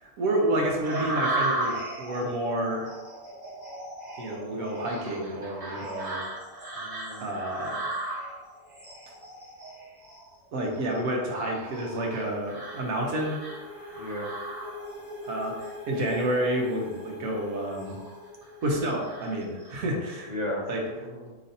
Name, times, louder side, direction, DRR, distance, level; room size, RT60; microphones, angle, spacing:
voice 1, 0.0-2.9 4.2-6.2 7.2-7.7 10.5-13.4 15.2-18.0 18.6-20.3 20.7-20.8, right 1 dB, 70° right, 0 dB, 1.2 m, -29 dB
sound 1, 0.8-15.1 15.6-16.2 16.7-17.0 17.5-18.2 18.6-19.8, right 2 dB, 20° right, 0.7 m, -36 dB
voice 2, 6.8-7.3 13.9-14.3 20.3-21.3, left 1 dB, 65° left, -5 dB, 0.4 m, -36 dB
sound 2, 11.1-19.6, left 2 dB, 45° left, 1.5 m, -44 dB
4.8 x 3.1 x 2.6 m, 1.2 s
omnidirectional pair, 1.6 m